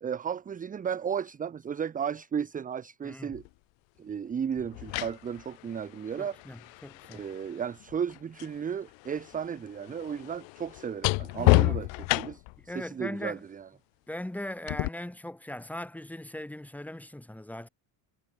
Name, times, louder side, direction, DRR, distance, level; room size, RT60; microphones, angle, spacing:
voice 1, 0.0-3.4 4.0-6.4 7.1-11.9 12.2-13.7, right 7 dB, 15° right, 0.8 m, -34 dB
sound 1, 3.3-3.5 4.6-8.6 8.9-12.6 14.7-14.9, left 27 dB, 70° left, 1.2 m, -29 dB
voice 2, 6.2-7.2 11.4-11.8 12.7-13.4 14.1-17.7, left 1 dB, 5° left, 2.0 m, -39 dB
cardioid pair, 150°, 46 cm